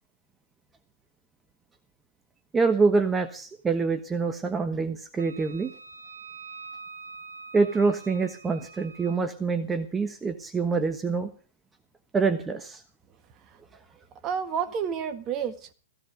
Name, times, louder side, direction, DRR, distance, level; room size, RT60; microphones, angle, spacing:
voice 1, 2.5-5.7 7.5-11.3 12.1-12.8, right 4 dB, 15° right, 1.2 m, -25 dB
Wind instrument woodwind instrument, 5.2-9.2, right 4 dB, 90° right, 3.4 m, -45 dB
voice 2, 14.2-15.7, right 7 dB, 30° right, 1.8 m, -30 dB
16.0 x 16.0 x 5.1 m
hypercardioid pair, 120°, 0 cm